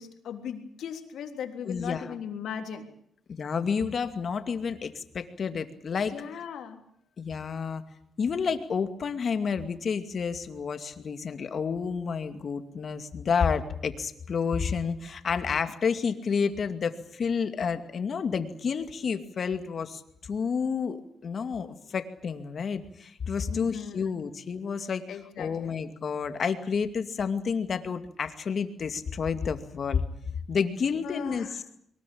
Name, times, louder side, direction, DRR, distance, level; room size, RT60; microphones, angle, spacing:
voice 1, 0.0-2.8 6.1-6.8 23.5-24.1 25.1-25.8 31.0-31.6, left 8 dB, 80° left, 5 dB, 3.5 m, -38 dB
voice 2, 1.7-2.1 3.3-6.1 7.2-7.8 8.2-25.0 25.4-30.0 30.5-31.5, left 6 dB, 55° left, 8 dB, 2.3 m, -30 dB
23.0 x 20.0 x 8.7 m, 0.69 s
cardioid pair, 95°, 0 cm